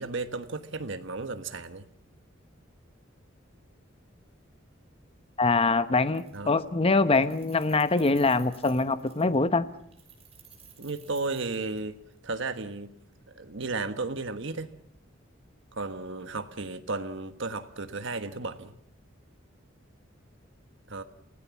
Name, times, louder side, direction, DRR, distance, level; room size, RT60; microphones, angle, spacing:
voice 1, 0.0-1.8 6.3-6.6 10.8-12.0 12.2-12.9 13.3-14.7 15.7-18.7 20.9-21.0, right 3 dB, 70° right, 1.4 m, -34 dB
voice 2, 5.4-9.7, left 3 dB, 30° left, 0.9 m, -24 dB
Keys jangling, 5.5-5.6 5.9-6.7 6.9-9.4 9.9-12.2, right 8 dB, 30° right, 5.9 m, -55 dB
28.0 x 17.0 x 7.2 m
head